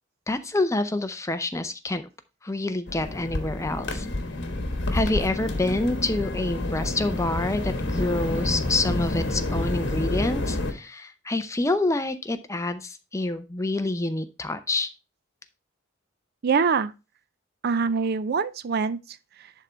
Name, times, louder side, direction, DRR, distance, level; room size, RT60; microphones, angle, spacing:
voice 1, 0.3-2.0 2.4-4.1 4.9-14.9, left 2 dB, 15° left, 0.6 m, -27 dB
sound 1, 2.9-10.7, left 2 dB, 60° left, 1.3 m, -28 dB
voice 2, 16.4-16.9 17.6-19.5, right 5 dB, 50° right, 0.4 m, -25 dB
10.5 x 3.7 x 4.4 m
head